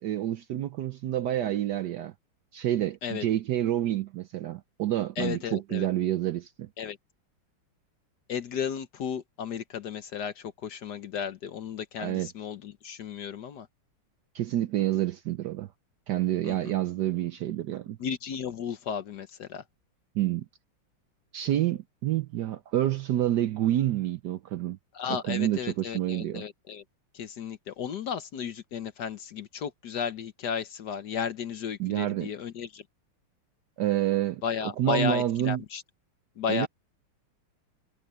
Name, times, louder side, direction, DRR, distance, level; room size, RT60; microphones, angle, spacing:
voice 1, 0.0-2.1 2.5-6.7 12.0-12.3 14.3-15.7 16.1-18.0 20.1-20.4 21.3-24.8 25.1-26.4 31.8-32.3 33.8-34.4 34.8-35.6 36.5-36.7, right 13 dB, 70° right, 1.0 m, -28 dB
voice 2, 5.2-5.9 6.8-7.0 8.3-13.7 16.4-16.7 18.0-19.6 24.9-26.8 27.1-32.8 34.4-35.8 36.4-36.7, left 7 dB, 60° left, 1.3 m, -34 dB
omnidirectional pair, 2.3 m